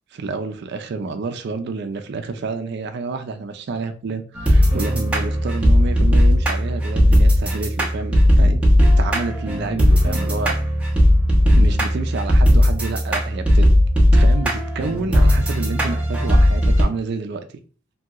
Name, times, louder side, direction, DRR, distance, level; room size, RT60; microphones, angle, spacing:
voice 1, 0.1-8.6 9.0-10.5 11.5-13.7 14.1-17.5, right 4 dB, 55° right, 0.4 m, -29 dB
sound 1, 4.3-16.8, equal, 5° right, 0.6 m, -16 dB
2.8 x 2.7 x 2.3 m
head